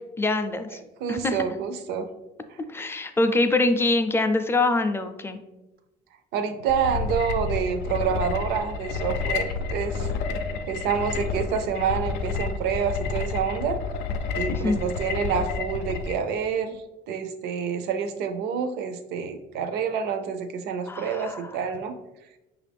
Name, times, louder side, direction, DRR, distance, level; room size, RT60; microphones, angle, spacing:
voice 1, 0.2-0.8 1.1-1.4 2.7-5.4 14.5-14.8 20.9-21.4, left 2 dB, 15° left, 7 dB, 0.4 m, -24 dB
voice 2, 0.7-2.1 2.5-2.6 6.3-10.1 10.7-13.8 14.3-16.8 17.1-22.0, right 6 dB, 80° right, 9 dB, 0.5 m, -28 dB
sound 1, 6.7-16.1, left 5 dB, 90° left, 0.5 m, -30 dB
5.8 x 2.5 x 3.4 m, 0.99 s
cardioid pair, 110°, 17 cm